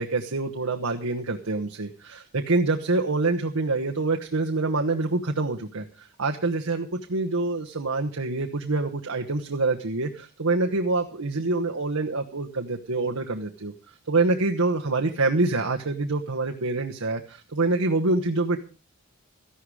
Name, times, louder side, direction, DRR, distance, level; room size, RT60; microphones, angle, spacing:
voice 1, 0.0-18.6, right 3 dB, 80° right, 3 dB, 1.1 m, -26 dB
14.0 x 11.5 x 4.9 m, 0.35 s
head